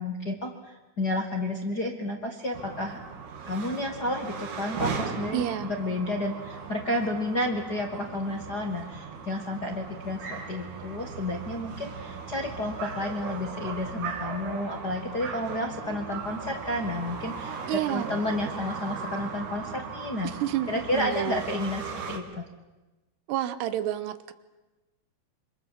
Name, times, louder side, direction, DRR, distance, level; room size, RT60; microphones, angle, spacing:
voice 1, 0.0-3.0 3.4-20.3 20.7-22.5, left 1 dB, 45° left, 2 dB, 1.3 m, -31 dB
sound 1, 2.5-22.2, right 5 dB, 55° right, 3.3 m, -38 dB
voice 2, 5.3-5.7 17.7-18.1 20.2-21.4 23.3-24.3, right 12 dB, 90° right, 12 dB, 3.3 m, -30 dB
26.5 x 25.5 x 7.5 m, 1.1 s
omnidirectional pair, 4.7 m